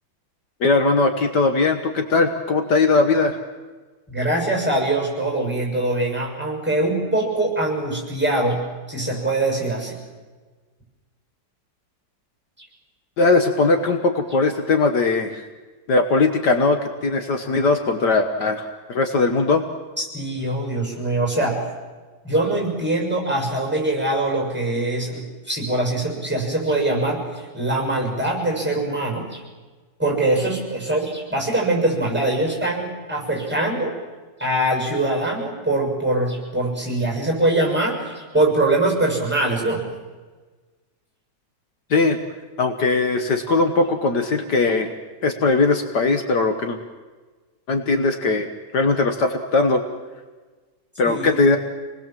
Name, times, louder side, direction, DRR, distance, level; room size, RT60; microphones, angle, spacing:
voice 1, 0.6-3.4 13.2-15.5 15.9-19.6 41.9-42.2 42.6-44.9 45.2-46.8 47.7-48.5 48.7-49.8 51.0-51.6, left 3 dB, 65° left, 6 dB, 1.9 m, -19 dB
voice 2, 4.1-8.6 8.9-10.0 20.0-21.6 22.2-29.4 30.0-34.0 34.4-39.9 51.0-51.4, right 2 dB, 5° right, 0 dB, 6.9 m, -23 dB
28.5 x 20.0 x 7.6 m, 1.3 s
omnidirectional pair, 2.0 m